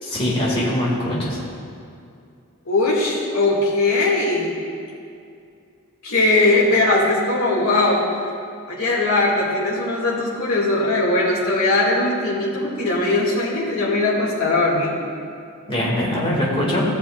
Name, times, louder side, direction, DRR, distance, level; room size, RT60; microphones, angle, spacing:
voice 1, 0.0-1.4 15.7-16.8, left 1 dB, 25° left, -5 dB, 2.2 m, -22 dB
voice 2, 2.7-4.5 6.0-8.0 8.7-15.0, left 2 dB, 80° left, -4 dB, 2.3 m, -20 dB
16.5 x 6.9 x 2.5 m, 2.5 s
head